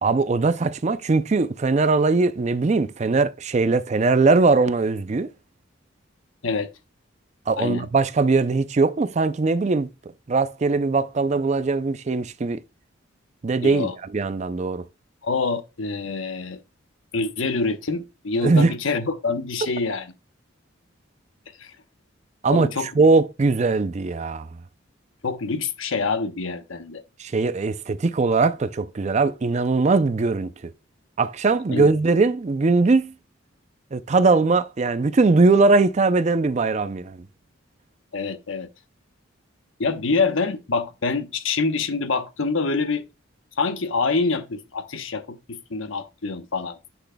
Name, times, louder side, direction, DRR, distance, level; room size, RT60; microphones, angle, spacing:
voice 1, 0.0-5.3 7.5-9.9 10.3-12.6 13.4-14.8 18.4-18.7 22.4-24.5 27.2-30.7 31.2-33.1 33.9-37.2, right 3 dB, 35° right, 0.4 m, -20 dB
voice 2, 7.6-7.9 13.6-13.9 15.2-16.6 17.1-20.1 21.6-21.7 22.5-22.9 25.2-27.0 31.7-31.9 38.1-38.7 39.8-43.0 43.6-46.9, left 4 dB, 80° left, 1.0 m, -26 dB
9.9 x 6.0 x 2.2 m
head